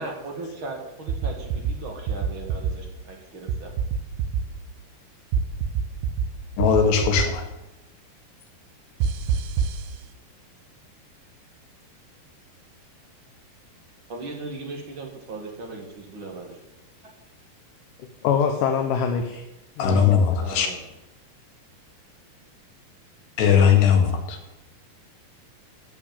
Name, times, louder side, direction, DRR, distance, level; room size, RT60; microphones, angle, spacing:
voice 1, 0.0-3.7 14.1-16.6 20.4-20.8, right 2 dB, 40° right, 1 dB, 2.2 m, -37 dB
sound 1, 1.1-1.7 2.1-2.7 3.5-4.4 5.3-6.3 6.6-7.3 9.0-9.8, right 6 dB, 85° right, 3.1 m, -25 dB
voice 2, 6.6-7.4 19.8-20.7 23.4-24.4, left 7 dB, 85° left, 4 dB, 3.9 m, -19 dB
voice 3, 18.0-19.4 19.8-20.4, left 7 dB, 70° left, 4 dB, 2.2 m, -25 dB
13.5 x 7.0 x 9.0 m, 0.97 s
omnidirectional pair, 4.7 m